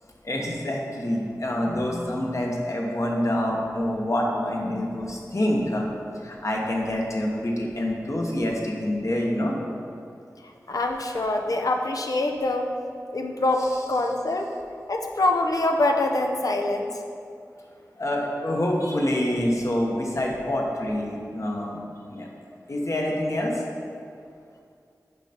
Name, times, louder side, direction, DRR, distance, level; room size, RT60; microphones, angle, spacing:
voice 1, 0.2-5.8 6.2-9.6 18.0-21.8 22.1-22.3 22.7-23.6, left 1 dB, 55° left, -1 dB, 1.2 m, -26 dB
voice 2, 10.4-12.7 13.1-14.5 14.9-17.0, left 2 dB, 70° left, 3 dB, 0.7 m, -25 dB
6.9 x 5.5 x 4.4 m, 2.4 s
wide cardioid pair, 45°, 6 cm